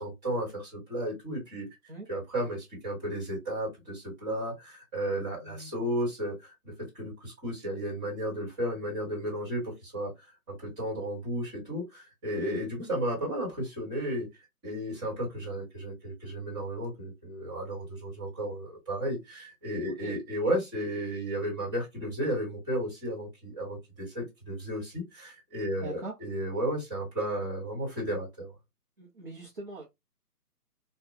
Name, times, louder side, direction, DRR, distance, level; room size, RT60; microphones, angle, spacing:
voice 1, 0.0-1.7 2.1-10.1 10.5-14.3 14.6-28.5, right 1 dB, 10° right, 1.2 m, -33 dB
voice 2, 5.4-6.0 19.9-20.2 25.8-26.1 29.0-29.8, right 2 dB, 35° right, 0.6 m, -42 dB
2.7 x 2.2 x 2.4 m
hypercardioid pair, 160°, 47 cm